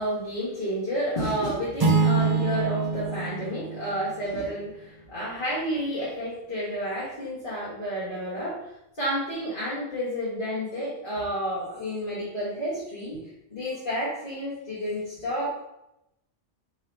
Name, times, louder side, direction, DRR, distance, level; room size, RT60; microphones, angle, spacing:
voice 1, 0.0-8.7 9.0-13.2 13.5-15.6, equal, 50° left, -9 dB, 1.4 m, -30 dB
sound 1, 1.8-4.6, right 4 dB, 40° right, 0.3 m, -25 dB
3.1 x 2.7 x 4.4 m, 0.84 s
omnidirectional pair, 1.2 m